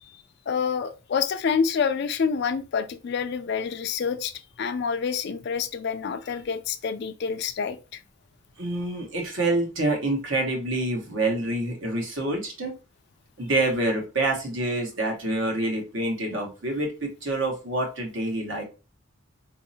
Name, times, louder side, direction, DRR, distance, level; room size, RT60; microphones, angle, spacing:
voice 1, 0.0-4.3 4.6-8.0, left 6 dB, 50° left, 0.3 m, -27 dB
voice 2, 8.6-12.7 13.4-18.6, right 2 dB, 60° right, 1.1 m, -27 dB
4.0 x 2.7 x 2.7 m
head